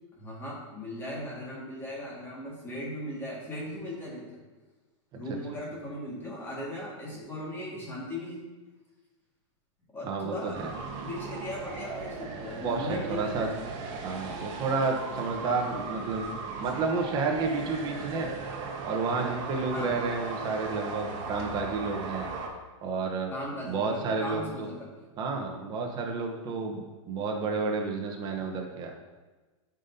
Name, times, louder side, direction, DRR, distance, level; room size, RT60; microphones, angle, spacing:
voice 1, 0.2-4.2 5.1-8.4 9.9-10.6 11.0-13.6 19.7-20.0 23.3-25.1, left 1 dB, 15° left, -5 dB, 1.9 m, -38 dB
voice 2, 10.0-10.7 12.6-13.5 14.0-16.3 16.6-18.3 18.9-22.3 22.8-23.3 23.7-24.7 25.2-28.9, right 4 dB, 25° right, 2 dB, 1.0 m, -31 dB
sound 1, 10.5-22.5, right 4 dB, 45° right, 1.4 m, -38 dB
11.5 x 5.2 x 2.8 m, 1.3 s
supercardioid pair, 150°, 17 cm